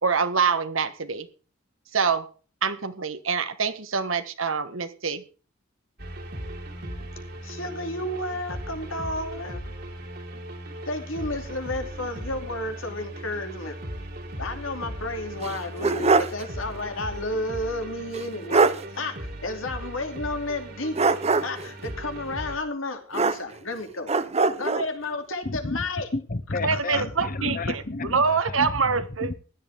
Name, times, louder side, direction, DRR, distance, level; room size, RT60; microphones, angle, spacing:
voice 1, 0.0-1.3 1.9-2.3 2.6-5.2 26.6-27.8 28.1-29.3, right 5 dB, 80° right, 1.5 m, -25 dB
sound 1, 6.0-22.6, right 1 dB, 55° right, 2.9 m, -38 dB
voice 2, 7.4-9.6 10.9-13.8 14.4-18.7 18.9-21.1 21.4-26.1 26.7-27.1 27.4-27.5, left 2 dB, 80° left, 2.8 m, -32 dB
sound 2, 15.4-16.4 16.8-16.9 18.1-18.2 18.5-18.8 20.9-21.7 23.1-23.7 24.1-24.9, right 3 dB, 30° right, 0.8 m, -22 dB
voice 3, 25.4-25.8 26.1-29.3, left 2 dB, 45° left, 1.0 m, -31 dB
16.0 x 11.0 x 3.6 m
head